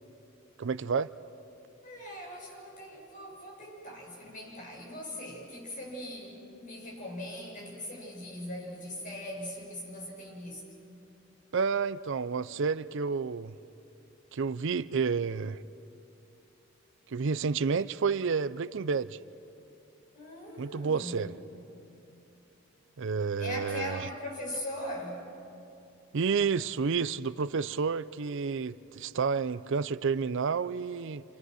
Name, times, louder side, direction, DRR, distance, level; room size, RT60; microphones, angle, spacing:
voice 1, 0.6-1.1 11.5-13.5 14.3-15.6 17.1-19.2 20.6-21.3 23.0-24.0 26.1-31.2, right 5 dB, 65° right, 0.5 m, -30 dB
voice 2, 1.8-10.7 20.1-21.4 23.4-25.3, left 1 dB, 40° left, 7.2 m, -40 dB
29.5 x 27.5 x 6.4 m
head